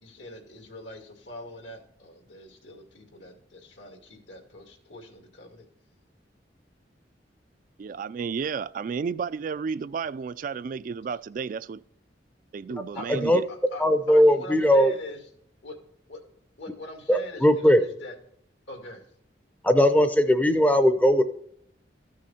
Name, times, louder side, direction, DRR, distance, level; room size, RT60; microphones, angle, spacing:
voice 1, 0.0-5.7 12.9-15.2 15.6-15.8 16.1-16.2 16.6-18.2 18.7-19.0, left 2 dB, 80° left, 2.3 m, -43 dB
voice 2, 7.8-11.8 12.5-13.4, right 5 dB, 45° right, 0.3 m, -32 dB
voice 3, 13.1-13.4 13.8-14.9 17.1-17.8 19.6-21.2, equal, 10° left, 0.5 m, -19 dB
13.5 x 6.3 x 4.2 m
head